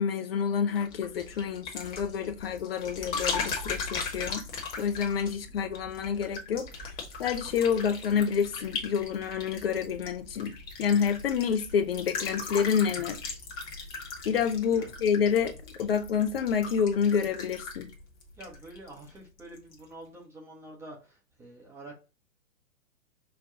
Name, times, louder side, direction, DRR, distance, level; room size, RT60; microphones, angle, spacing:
voice 1, 0.0-4.4 4.8-6.9 7.2-10.5 10.8-13.2 14.3-15.5 15.8-17.9, left 7 dB, 45° left, 0.5 m, -28 dB
sound 1, 0.8-19.1 19.4-19.8, left 4 dB, 20° left, 1.0 m, -38 dB
voice 2, 18.4-21.9, right 1 dB, 5° right, 0.5 m, -47 dB
5.4 x 2.2 x 3.7 m
figure-of-eight pair, 115°, 42 cm